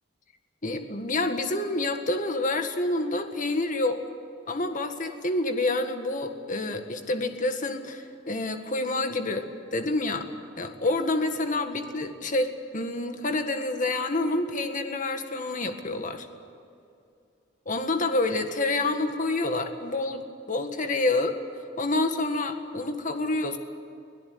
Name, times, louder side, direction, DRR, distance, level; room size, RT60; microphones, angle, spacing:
voice 1, 0.6-4.0 4.5-10.3 10.6-16.3 17.7-21.3 21.8-23.6, left 2 dB, 45° left, 6 dB, 1.8 m, -28 dB
24.5 x 17.0 x 9.6 m, 2.5 s
head